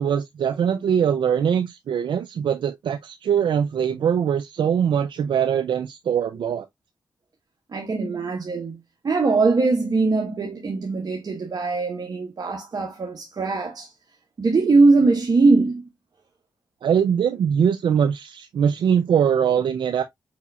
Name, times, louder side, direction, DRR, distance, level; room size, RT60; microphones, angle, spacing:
voice 1, 0.0-6.7 16.8-20.0, right 8 dB, 80° right, 0.4 m, -22 dB
voice 2, 7.7-8.8 9.0-13.9 14.4-15.8, right 3 dB, 55° right, 1.2 m, -21 dB
5.0 x 4.2 x 2.3 m
cardioid pair, 65°, 8 cm